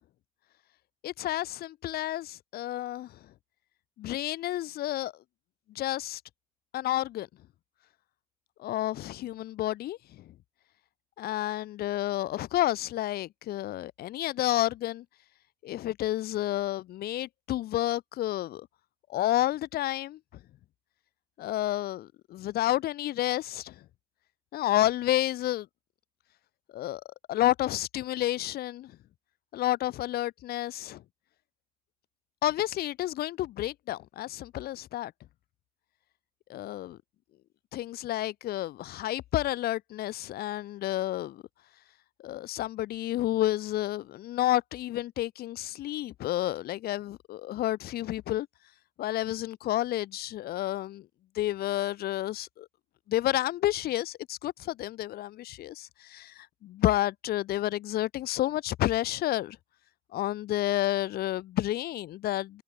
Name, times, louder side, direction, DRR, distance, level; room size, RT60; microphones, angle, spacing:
voice 1, 1.0-3.1 4.0-5.1 5.7-6.2 6.7-7.3 8.6-10.2 11.2-15.0 15.6-18.7 19.1-20.2 21.4-23.7 24.5-25.7 26.7-27.0 27.3-28.9 29.5-31.0 32.4-35.1 36.5-37.0 37.7-41.4 42.2-48.5 49.0-51.1 51.3-52.7 53.1-59.6 60.1-62.6, left 14 dB, 65° left, 1.0 m, -30 dB
cardioid pair, 110°, 17 cm